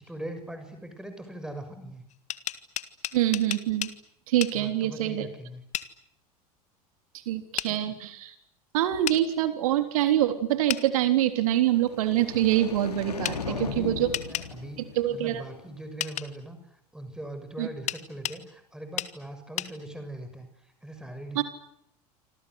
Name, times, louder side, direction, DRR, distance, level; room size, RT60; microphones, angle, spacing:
voice 1, 0.0-2.1 4.5-5.6 7.7-7.9 13.3-14.8 15.1-21.4, right 1 dB, 5° right, 8 dB, 6.5 m, -41 dB
sound 1, 2.1-4.0 4.4-4.6 5.7-5.9 7.6-7.7 9.1-9.2 10.7-10.8 13.2-13.4 14.1-14.5 16.0-16.3 17.9-18.4 19.0-19.1 19.6-19.7, left 12 dB, 35° left, 1.8 m, -32 dB
voice 2, 3.1-3.9 4.3-5.3 7.3-8.3 8.7-14.1 14.8-15.4 17.6-17.7 21.4-21.5, right 13 dB, 60° right, 8 dB, 3.7 m, -25 dB
sound 2, 11.5-15.8, left 5 dB, 75° left, 3.5 m, -38 dB
28.0 x 26.0 x 8.0 m, 0.74 s
figure-of-eight pair, 80°, 20 cm